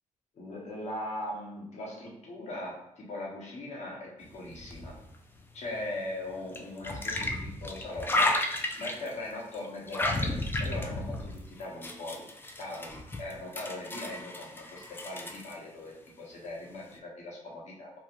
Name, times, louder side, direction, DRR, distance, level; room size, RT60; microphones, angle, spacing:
voice 1, 0.3-4.9 5.5-8.3 8.8-10.3 10.6-12.2 12.6-17.9, left 1 dB, 55° left, -3 dB, 1.0 m, -40 dB
sound 1, 4.3-6.0 6.5-9.1 9.5-15.5, left 2 dB, 15° left, 0.3 m, -33 dB
3.0 x 2.3 x 2.4 m, 0.79 s
cardioid pair, 90°, 14 cm